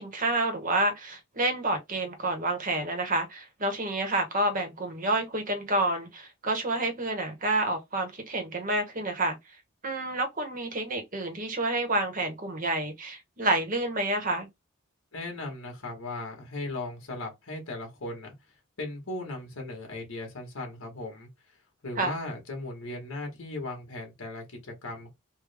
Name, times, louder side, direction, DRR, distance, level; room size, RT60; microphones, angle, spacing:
voice 1, 0.0-9.4 9.8-14.5 22.0-22.1, right 2 dB, 35° right, 0.9 m, -29 dB
voice 2, 15.1-18.3 18.8-21.3 21.8-25.1, left 2 dB, 70° left, 1.4 m, -37 dB
3.4 x 2.2 x 3.3 m
head